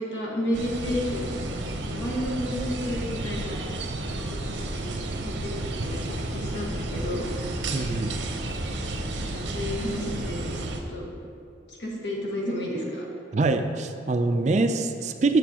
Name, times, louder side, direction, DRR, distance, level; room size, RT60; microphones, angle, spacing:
voice 1, 0.0-1.3 1.8-3.6 4.0-7.3 9.2-10.5 10.9-11.1 11.7-13.1, left 1 dB, 80° left, -3 dB, 1.5 m, -32 dB
sound 1, 0.5-10.8, right 2 dB, 75° right, 0.7 m, -32 dB
voice 2, 7.7-8.2 13.3-15.4, right 3 dB, 40° right, 7 dB, 0.3 m, -24 dB
8.0 x 6.9 x 2.9 m, 2.5 s
head